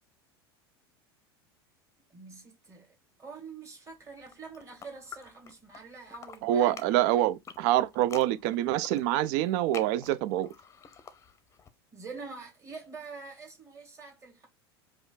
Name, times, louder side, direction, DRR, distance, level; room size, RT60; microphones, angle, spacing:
voice 1, 2.1-7.0 11.9-14.5, right 4 dB, 25° right, 2.1 m, -46 dB
sound 1, 4.2-5.8 6.1-11.7, left 6 dB, 20° left, 0.7 m, -48 dB
voice 2, 6.4-10.5, right 13 dB, 50° right, 0.4 m, -26 dB
4.8 x 2.4 x 3.9 m
figure-of-eight pair, 80°, 13 cm